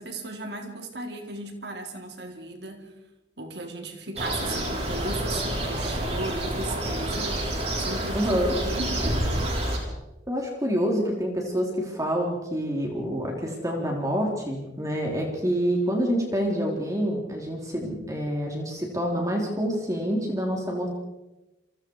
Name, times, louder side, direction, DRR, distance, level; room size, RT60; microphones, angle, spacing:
voice 1, 0.0-2.9 3.4-7.5 7.8-9.6, right 2 dB, 65° right, 4 dB, 4.1 m, -36 dB
sound 1, 4.2-9.8, right 1 dB, 35° right, 6.4 m, -28 dB
voice 2, 8.1-8.5 10.3-21.0, equal, 20° right, 0 dB, 4.2 m, -27 dB
30.0 x 23.5 x 5.0 m, 1.0 s
head